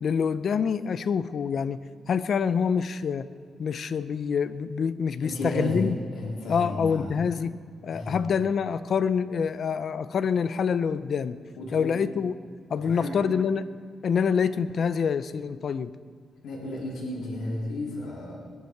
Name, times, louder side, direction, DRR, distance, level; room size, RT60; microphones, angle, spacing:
voice 1, 0.0-3.3 3.6-6.0 6.5-7.6 7.8-11.4 11.7-12.3 12.7-13.7 14.0-15.9, left 6 dB, 50° left, 14 dB, 0.5 m, -26 dB
voice 2, 5.2-7.2 7.9-8.2 11.6-12.0 12.7-13.2 16.4-18.4, left 1 dB, 80° left, -5 dB, 3.8 m, -33 dB
20.5 x 11.0 x 4.7 m, 2.1 s
cardioid pair, 135°, 0 cm